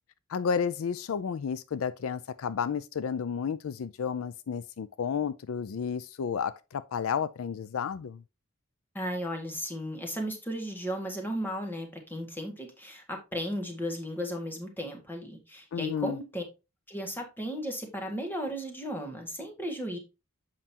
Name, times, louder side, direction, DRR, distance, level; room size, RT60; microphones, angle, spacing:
voice 1, 0.3-8.2 15.7-16.2, left 6 dB, 75° left, 0.4 m, -32 dB
voice 2, 8.9-16.4 16.9-20.0, equal, 10° left, 1.8 m, -35 dB
7.5 x 5.5 x 2.8 m
head